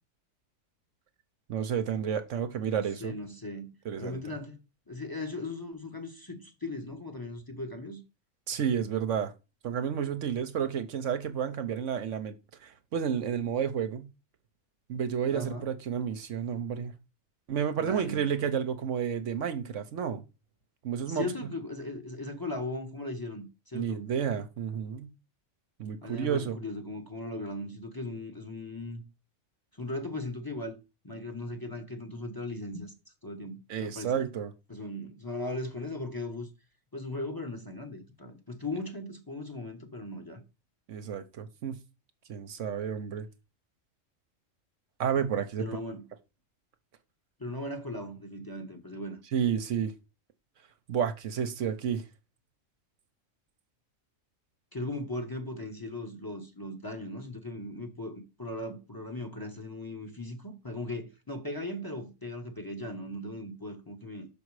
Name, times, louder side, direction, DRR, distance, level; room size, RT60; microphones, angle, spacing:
voice 1, 1.5-3.2 3.8-4.2 8.5-9.3 9.6-12.3 12.6-14.1 14.9-16.9 17.5-20.2 20.8-21.3 23.7-25.1 25.8-26.6 33.7-34.5 40.9-41.7 42.3-43.2 45.0-45.7 49.3-49.9 50.9-52.0, right 8 dB, 70° right, 1.1 m, -31 dB
voice 2, 2.7-3.7 4.0-4.6 4.9-8.0 15.3-15.7 17.8-18.2 21.1-24.0 26.0-29.0 29.7-30.8 31.0-32.9 33.2-34.2 34.7-36.5 36.9-40.4 45.6-46.0 47.4-49.2 54.7-64.3, left 2 dB, 20° left, 1.1 m, -38 dB
6.3 x 5.3 x 4.7 m
omnidirectional pair, 1.3 m